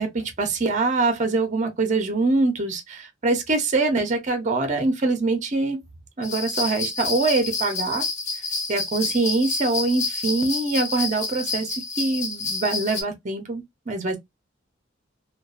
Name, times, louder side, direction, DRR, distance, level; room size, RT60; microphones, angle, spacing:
voice 1, 0.0-5.8 6.2-8.0 8.7-14.2, right 3 dB, 40° right, 0.6 m, -24 dB
sound 1, 6.2-13.0, left 4 dB, 35° left, 0.8 m, -29 dB
2.5 x 2.2 x 2.3 m
head